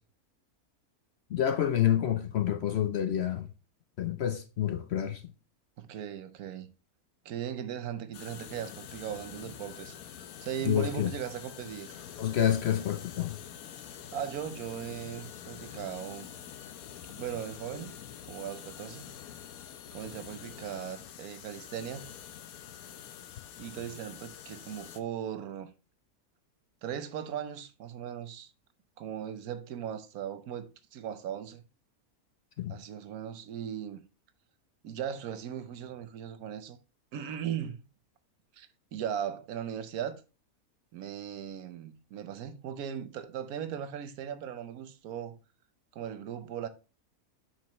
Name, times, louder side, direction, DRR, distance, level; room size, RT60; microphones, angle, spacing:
voice 1, 1.3-3.5 4.0-5.2 10.6-11.1 12.2-13.4 32.6-32.8, left 10 dB, 60° left, 0.7 m, -28 dB
voice 2, 5.8-6.7 7.2-12.0 14.1-16.3 17.1-18.0 18.3-19.1 19.9-22.1 23.6-25.7 26.8-28.5 29.0-31.6 32.7-34.0 34.8-36.8 37.1-37.8 38.5-40.2 40.9-45.4 45.9-46.7, right 9 dB, 85° right, 1.2 m, -38 dB
sound 1, 8.1-25.0, left 9 dB, 80° left, 1.2 m, -46 dB
7.4 x 5.9 x 3.0 m
omnidirectional pair, 1.5 m